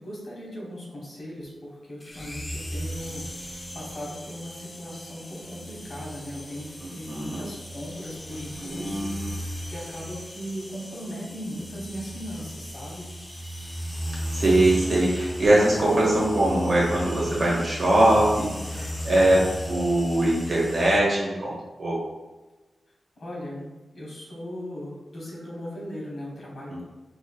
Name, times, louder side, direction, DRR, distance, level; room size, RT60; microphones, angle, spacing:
voice 1, 0.0-3.2 3.7-9.1 9.7-13.1 23.2-23.7 23.9-26.8, equal, 55° left, -4 dB, 1.1 m, -38 dB
sound 1, 2.0-21.0, equal, 15° left, 0.3 m, -36 dB
voice 2, 6.8-7.4 8.6-9.4 14.3-21.5 21.8-22.0 26.7-26.8, right 1 dB, 45° right, -5 dB, 1.1 m, -22 dB
4.4 x 2.9 x 2.2 m, 1.2 s
wide cardioid pair, 180°, 0 cm